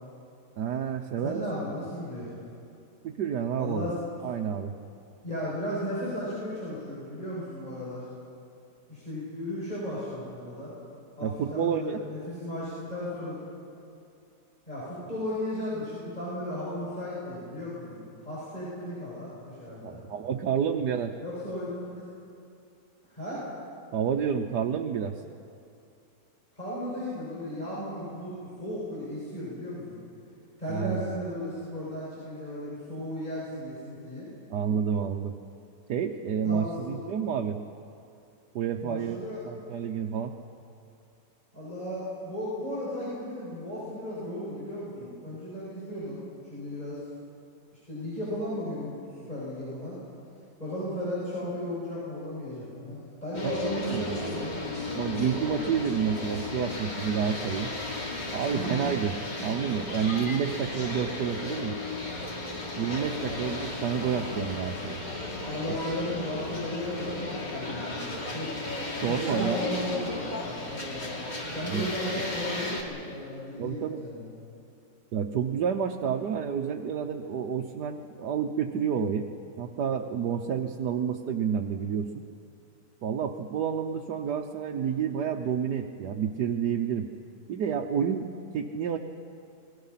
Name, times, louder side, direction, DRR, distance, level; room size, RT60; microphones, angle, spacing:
voice 1, 0.6-1.4 3.0-3.9 4.2-4.8 11.2-12.0 19.8-21.1 23.9-25.2 30.7-31.0 34.5-35.3 35.9-37.6 38.5-39.2 39.4-40.3 53.4-54.2 54.9-57.7 58.3-59.1 59.4-61.8 62.7-65.0 69.0-69.6 71.7-71.8 73.6-74.0 75.1-79.3 79.6-82.2 83.0-87.1 87.5-88.3 88.5-89.0, right 7 dB, 75° right, 2 dB, 1.5 m, -29 dB
voice 2, 1.2-2.3 3.6-3.9 5.2-8.1 8.9-10.8 11.2-13.4 14.7-20.0 21.2-22.0 23.1-23.4 26.5-28.3 28.6-30.0 30.6-34.3 36.4-37.0 38.8-39.4 41.5-46.2 46.5-47.0 47.7-49.0 49.3-50.0 50.6-54.7 58.5-58.9 63.3-63.4 65.5-68.5 69.0-71.2 71.5-74.3, left 1 dB, 25° left, -9 dB, 7.7 m, -35 dB
sound 1, 53.3-72.8, left 2 dB, 90° left, 3.6 m, -35 dB
30.0 x 22.0 x 5.8 m, 2.6 s
omnidirectional pair, 1.8 m